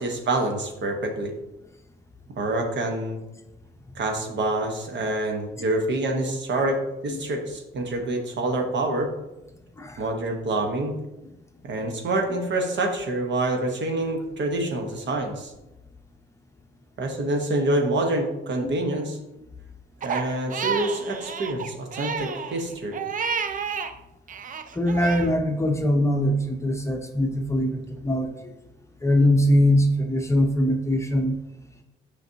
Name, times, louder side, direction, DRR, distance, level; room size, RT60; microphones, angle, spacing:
voice 1, 0.0-1.3 2.4-3.2 3.9-9.1 10.0-11.0 11.6-15.5 17.0-19.2 20.0-23.0, right 2 dB, 65° right, 3 dB, 1.2 m, -26 dB
Crying sobbing, 20.0-23.9 24.3-25.3, right 6 dB, 40° right, 0.5 m, -31 dB
voice 2, 24.7-28.5 29.0-31.4, left 1 dB, 15° left, 3 dB, 0.7 m, -22 dB
6.5 x 5.1 x 2.8 m, 0.95 s
cardioid pair, 90°, 20 cm